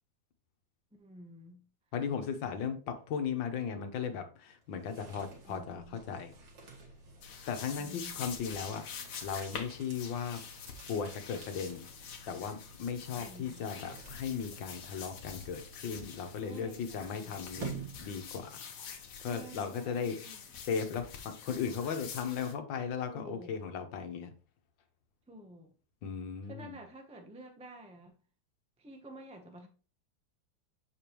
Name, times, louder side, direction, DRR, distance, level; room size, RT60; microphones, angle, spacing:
voice 1, 0.9-1.6 5.5-6.0 7.8-8.3 13.2-13.7 16.4-17.4 19.1-20.4 23.1-23.5 25.3-25.7 26.5-28.2 28.8-29.7, right 1 dB, 5° right, 0.5 m, -50 dB
voice 2, 1.9-6.3 7.5-10.4 10.9-11.9 12.3-18.5 18.9-20.2 20.7-24.3 26.0-26.8, left 6 dB, 85° left, 1.7 m, -37 dB
sound 1, 4.6-18.7, right 4 dB, 85° right, 2.5 m, -50 dB
sound 2, 7.2-22.5, left 7 dB, 65° left, 1.5 m, -47 dB
6.9 x 5.2 x 3.0 m
omnidirectional pair, 2.0 m